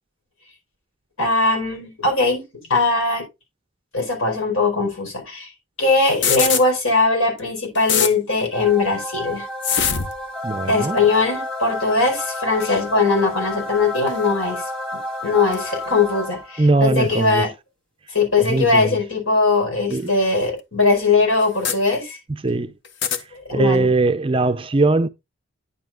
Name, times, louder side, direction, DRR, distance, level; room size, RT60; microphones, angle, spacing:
voice 1, 1.2-2.4 2.7-3.2 3.9-5.5 5.8-9.4 10.7-14.6 14.9-17.5 18.1-22.2 23.3-23.9, left 3 dB, 75° left, 4.7 m, -20 dB
sound 1, 6.1-6.6 7.4-7.5 7.7-8.1 9.6-10.2 11.0-11.2 12.6-12.8 14.1-14.3 15.5-15.6 17.0-17.1 18.5-18.6 19.9-20.0 20.4-20.5 21.4-21.8 22.8-23.2, left 7 dB, 55° left, 1.0 m, -23 dB
sound 2, 8.5-16.8, left 1 dB, 5° left, 1.3 m, -30 dB
voice 2, 10.4-11.0 16.6-17.4 18.5-18.8 19.9-20.1 22.4-22.7 23.5-25.1, right 3 dB, 25° right, 0.4 m, -19 dB
9.7 x 7.6 x 2.4 m
head